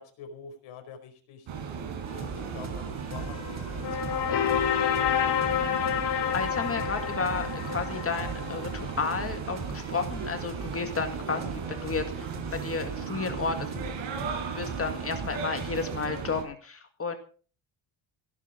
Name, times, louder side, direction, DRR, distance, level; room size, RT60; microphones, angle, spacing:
voice 1, 0.0-1.5 2.1-4.6, left 6 dB, 85° left, 6 dB, 4.8 m, -47 dB
sound 1, 1.5-16.4, right 6 dB, 65° right, 5.2 m, -36 dB
sound 2, 2.0-16.1, right 4 dB, 35° right, 3.1 m, -42 dB
sound 3, 3.1-9.0, left 9 dB, 55° left, 3.1 m, -29 dB
voice 2, 5.4-5.8 6.0-13.7 14.5-17.2, left 5 dB, 30° left, 6 dB, 2.0 m, -32 dB
17.5 x 11.0 x 5.1 m, 0.40 s
cardioid pair, 150°, 48 cm